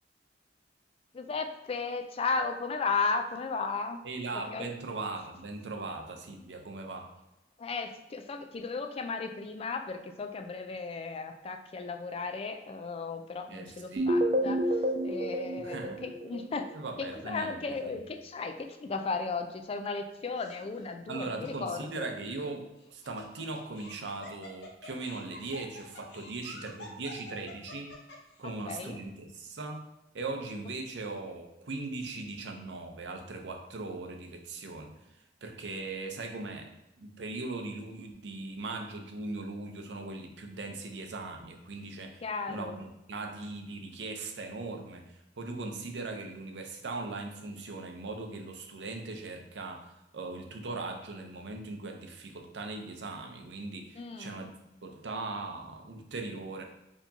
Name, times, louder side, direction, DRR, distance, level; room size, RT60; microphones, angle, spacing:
voice 1, 1.1-4.0 4.3-4.7 7.6-14.7 15.0-16.7 17.0-22.1 28.4-29.0 42.2-42.8 54.0-54.4, left 4 dB, 35° left, 6 dB, 0.3 m, -35 dB
voice 2, 4.0-7.1 13.5-14.1 15.6-16.0 16.7-18.0 21.1-28.0 28.4-29.9 30.1-34.9 35.4-36.7 37.0-54.5 54.8-56.6, right 3 dB, 90° right, 3 dB, 0.6 m, -39 dB
sound 1, 14.0-16.9, equal, 45° right, 0.4 m, -29 dB
Laughter, 20.4-20.8 21.4-21.5 22.8-28.4, left 2 dB, 70° left, 0.8 m, -48 dB
4.4 x 2.9 x 2.7 m, 0.95 s
head